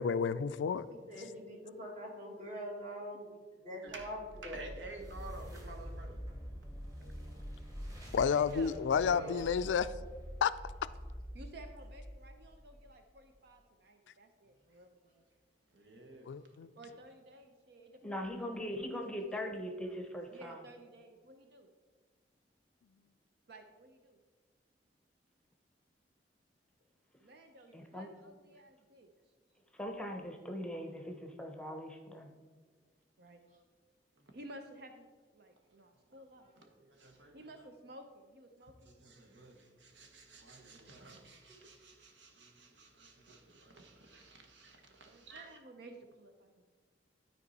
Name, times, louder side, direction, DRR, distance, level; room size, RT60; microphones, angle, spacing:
voice 1, 0.0-0.9 8.1-9.9 10.4-10.5 16.3-16.7, left 6 dB, 85° left, 15 dB, 0.3 m, -30 dB
voice 2, 0.9-3.3 3.6-4.7, equal, 45° right, -1 dB, 2.0 m, -44 dB
voice 3, 3.8-4.1 4.4-6.2 7.0-7.3 9.0-9.4 15.7-16.3 34.2-34.4 36.6-37.7 38.8-45.6, right 2 dB, 85° right, 4 dB, 1.2 m, -51 dB
sound 1, 3.9-13.0, equal, 20° right, 1.6 m, -46 dB
voice 4, 8.2-8.8 11.3-14.9 15.1-15.2 16.8-19.4 20.3-21.7 23.5-24.2 27.2-29.1 33.2-33.4 34.3-35.1 35.3-36.5 37.3-38.9 45.1-46.6, right 1 dB, 65° right, 5 dB, 0.6 m, -54 dB
voice 5, 18.0-20.6 27.7-28.1 29.7-32.3, equal, 5° left, 4 dB, 0.8 m, -41 dB
12.5 x 4.5 x 4.1 m, 1.4 s
head